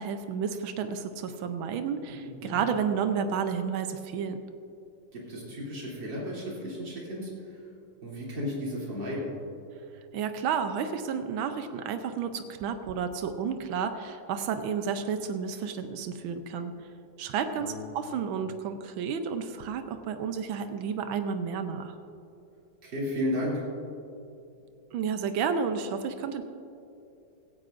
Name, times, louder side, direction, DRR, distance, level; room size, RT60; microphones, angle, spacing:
voice 1, 0.0-4.4 10.1-16.7 17.2-21.9 24.9-26.4, right 6 dB, 85° right, 8 dB, 1.5 m, -31 dB
voice 2, 2.1-2.6 5.1-7.7 8.0-9.3 17.6-17.8 22.8-23.6, left 1 dB, 65° right, -5 dB, 3.8 m, -34 dB
17.0 x 15.5 x 2.6 m, 2.7 s
omnidirectional pair, 2.1 m